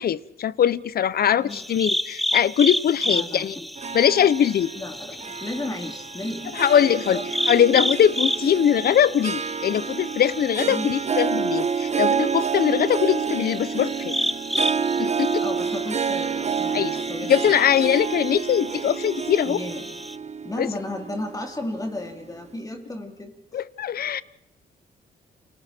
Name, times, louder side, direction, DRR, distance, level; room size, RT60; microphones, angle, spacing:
voice 1, 0.0-3.6 3.9-4.7 6.5-7.2 7.5-14.1 15.0-15.4 16.7-17.0 17.3-19.6 20.6-20.7 23.5-24.2, left 9 dB, 60° left, 0.9 m, -21 dB
sound 1, 1.5-20.2, equal, ahead, 0.7 m, -32 dB
voice 2, 3.1-3.7 4.7-7.3 10.7-10.9 15.3-17.6 19.4-20.0 20.4-23.6, left 1 dB, 20° left, 3.3 m, -34 dB
Harp, 3.8-22.2, right 6 dB, 40° right, 1.4 m, -29 dB
30.0 x 25.0 x 4.5 m
cardioid pair, 95°, 18 cm